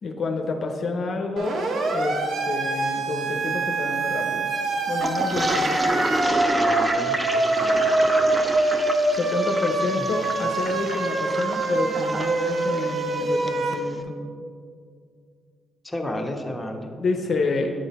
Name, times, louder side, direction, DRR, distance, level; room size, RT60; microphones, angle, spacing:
voice 1, 0.0-1.6 1.9-4.5 4.9-5.9 9.1-14.2 17.0-17.7, left 3 dB, 55° left, 3 dB, 0.5 m, -28 dB
Siren, 1.4-13.7, right 2 dB, 60° right, 0.7 m, -24 dB
Toilet flush, 5.0-13.6, right 1 dB, 20° right, 0.6 m, -29 dB
voice 2, 6.6-7.1 7.6-7.9 9.9-10.1 15.8-16.9, left 1 dB, 10° left, 1 dB, 0.9 m, -32 dB
8.6 x 3.8 x 4.1 m, 2.3 s
supercardioid pair, 60°, 0 cm